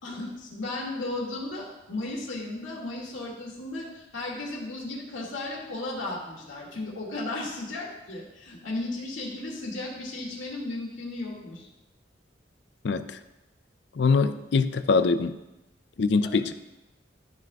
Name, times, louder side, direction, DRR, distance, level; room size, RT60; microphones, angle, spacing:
voice 1, 0.0-11.7 16.2-16.3, left 2 dB, 90° left, -2 dB, 2.2 m, -35 dB
voice 2, 12.8-13.2 14.0-15.4 16.0-16.5, left 4 dB, 65° left, 12 dB, 0.4 m, -23 dB
12.5 x 5.9 x 2.3 m, 0.96 s
head